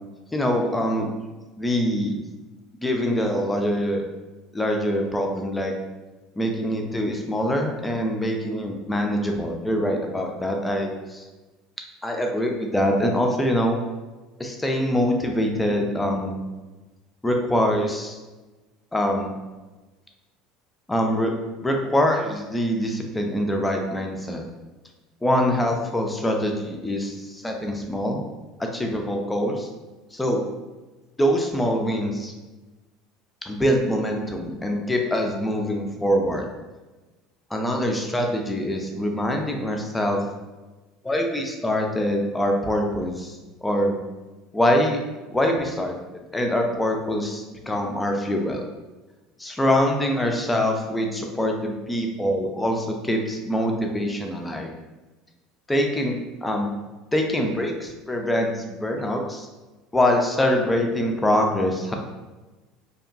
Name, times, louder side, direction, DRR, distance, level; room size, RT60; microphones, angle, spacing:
voice 1, 0.3-1.1 1.6-2.2 2.8-4.0 4.5-5.7 6.4-11.2 12.0-13.8 14.4-16.4 17.2-18.2 18.9-19.3 20.9-21.3 21.6-24.4 25.2-28.2 28.6-29.7 30.1-30.4 31.2-32.3 33.5-36.5 37.5-40.2 41.0-43.4 43.6-44.0 44.5-45.0 45.3-48.6 49.4-54.7 55.7-56.7 57.1-59.5 59.9-61.9, equal, 10° left, 2 dB, 0.4 m, -24 dB
2.7 x 2.1 x 2.5 m, 1.2 s
figure-of-eight pair, 65°, 0 cm